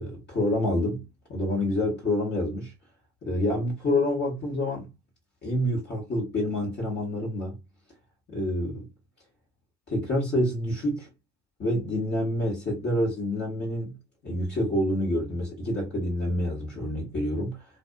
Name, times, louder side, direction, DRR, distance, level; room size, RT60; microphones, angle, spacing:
voice 1, 0.0-2.7 3.2-4.9 5.4-7.6 8.3-8.9 9.9-11.1 11.6-14.0 14.2-17.7, left 1 dB, 30° left, 1.4 m, -27 dB
2.6 x 2.4 x 2.2 m
hypercardioid pair, 80°, 33 cm